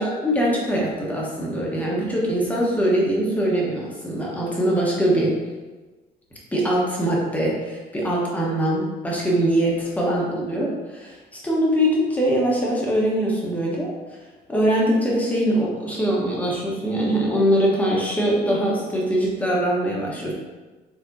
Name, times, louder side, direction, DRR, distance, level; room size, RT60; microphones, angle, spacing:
voice 1, 0.0-5.3 6.5-11.2 11.4-13.9 14.5-20.3, right 1 dB, 10° left, -4 dB, 1.1 m, -22 dB
4.3 x 3.4 x 2.6 m, 1.2 s
cardioid pair, 110°, 17 cm